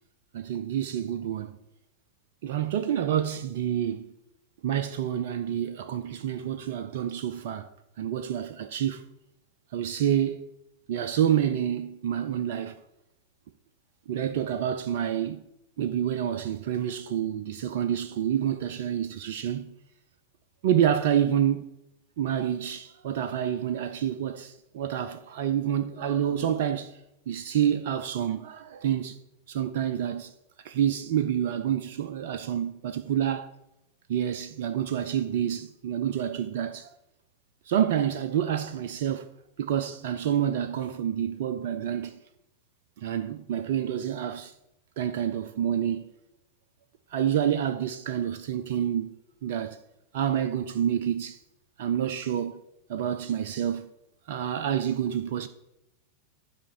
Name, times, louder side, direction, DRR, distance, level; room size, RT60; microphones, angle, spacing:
voice 1, 0.3-1.6 2.4-4.1 4.6-7.7 8.0-9.0 9.7-10.5 10.9-12.8 14.1-15.4 15.8-19.7 20.6-21.6 22.2-27.0 27.3-29.2 29.5-30.3 30.6-33.5 34.1-36.9 37.7-39.3 39.6-42.2 43.0-44.5 45.0-46.1 47.1-49.8 50.1-51.4 51.8-52.6 52.9-53.9 54.3-55.5, right 9 dB, 55° right, 0.4 m, -28 dB
11.5 x 5.0 x 4.4 m
figure-of-eight pair, 90°, 0 cm